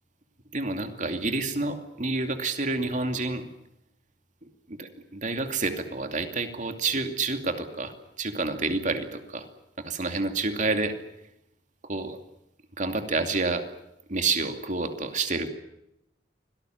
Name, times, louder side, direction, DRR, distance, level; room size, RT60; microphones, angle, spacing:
voice 1, 0.5-3.5 4.7-9.5 9.8-10.9 11.8-12.2 12.8-13.6 14.1-15.5, right 3 dB, 45° right, 7 dB, 2.6 m, -29 dB
25.0 x 18.0 x 9.4 m, 0.84 s
head